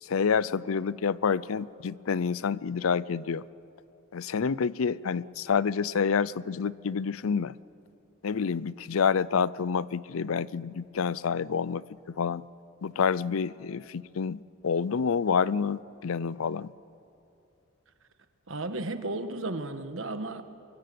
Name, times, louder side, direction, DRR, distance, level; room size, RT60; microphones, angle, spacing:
voice 1, 0.0-3.4 4.1-7.5 8.2-12.5 12.8-16.7, left 6 dB, 90° left, 20 dB, 0.5 m, -28 dB
voice 2, 18.5-20.4, right 2 dB, 70° right, 9 dB, 1.4 m, -34 dB
24.5 x 22.5 x 7.8 m, 2.7 s
head